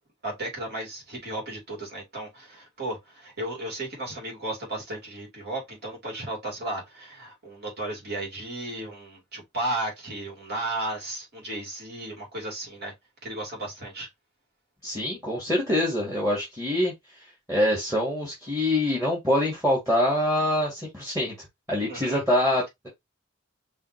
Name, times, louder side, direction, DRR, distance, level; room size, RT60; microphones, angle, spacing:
voice 1, 0.2-12.9 13.2-14.1 21.9-22.2, right 1 dB, 50° right, 2.8 m, -34 dB
voice 2, 14.8-16.9 17.5-21.3 21.7-22.9, left 1 dB, 10° right, 2.0 m, -25 dB
5.6 x 2.9 x 2.9 m
head